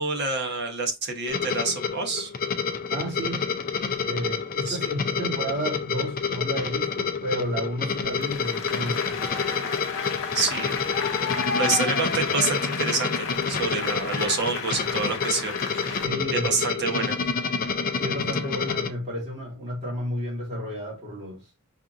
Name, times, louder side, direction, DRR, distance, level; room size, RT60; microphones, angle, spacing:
voice 1, 0.0-2.3 4.6-4.9 10.3-10.8 11.1-16.0 16.3-17.2, right 4 dB, 50° right, 1.0 m, -28 dB
sound 1, 1.3-18.9, left 5 dB, 40° left, 0.5 m, -28 dB
voice 2, 2.9-3.4 4.1-9.2 16.0-16.5 17.9-21.4, equal, 30° right, 1.9 m, -32 dB
Applause, 8.1-16.1, left 5 dB, 65° left, 0.8 m, -32 dB
5.5 x 2.5 x 2.5 m
head